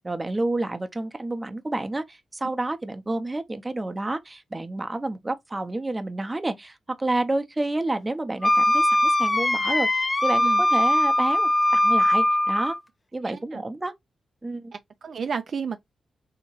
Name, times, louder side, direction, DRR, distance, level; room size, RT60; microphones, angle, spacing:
voice 1, 0.0-12.7 13.1-13.9 14.4-14.7, right 2 dB, 25° right, 0.6 m, -29 dB
Wind instrument woodwind instrument, 8.4-12.8, left 1 dB, 30° left, 0.5 m, -21 dB
voice 2, 13.2-13.6 14.7-15.8, right 6 dB, 60° right, 0.3 m, -32 dB
3.3 x 2.8 x 3.0 m
cardioid pair, 60°, 0 cm